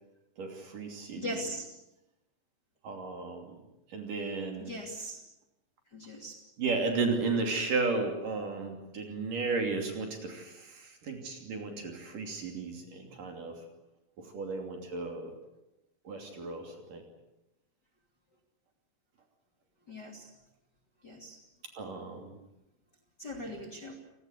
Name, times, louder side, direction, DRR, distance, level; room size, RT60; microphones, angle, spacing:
voice 1, 0.4-1.4 2.8-3.6 3.9-4.7 6.6-13.6 14.2-15.3 16.0-17.0 21.8-22.4, right 4 dB, 50° right, 3 dB, 4.1 m, -34 dB
voice 2, 1.2-1.6 4.6-5.2 5.9-6.3 16.4-16.6 19.9-20.3 21.0-21.4 23.2-23.9, left 1 dB, 25° left, 1 dB, 2.7 m, -40 dB
29.0 x 18.5 x 8.2 m, 0.93 s
omnidirectional pair, 5.2 m